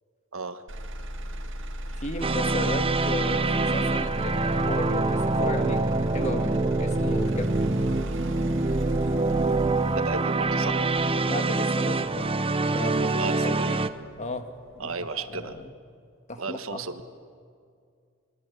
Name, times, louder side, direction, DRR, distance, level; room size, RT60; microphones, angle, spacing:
Motor vehicle (road), 0.7-14.7 15.2-15.7, equal, 65° right, 2.1 m, -36 dB
voice 1, 2.0-7.8 11.3-12.3 12.7-13.8 14.2-15.7 16.3-16.9, left 1 dB, 35° left, 6 dB, 1.9 m, -35 dB
sound 1, 2.2-13.9, right 3 dB, 25° right, 0.9 m, -25 dB
voice 2, 10.0-10.8 13.2-13.7 14.8-15.6 16.4-17.0, right 4 dB, 80° right, 8 dB, 1.6 m, -33 dB
25.5 x 23.5 x 8.5 m, 2.2 s
head